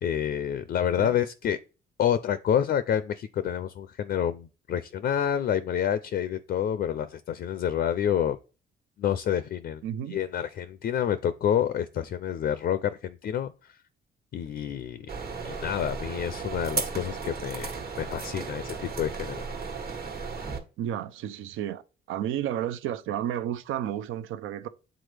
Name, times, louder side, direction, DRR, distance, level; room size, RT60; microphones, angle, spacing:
voice 1, 0.0-1.6 2.0-8.4 9.0-9.8 10.1-13.8 14.3-15.1 15.4-19.4, left 9 dB, 55° left, 0.4 m, -28 dB
voice 2, 9.8-10.2 20.8-21.8 22.1-24.7, right 10 dB, 85° right, 0.5 m, -32 dB
sound 1, 15.1-20.6, right 5 dB, 50° right, 1.3 m, -35 dB
8.0 x 3.7 x 3.3 m
cardioid pair, 90°, 20 cm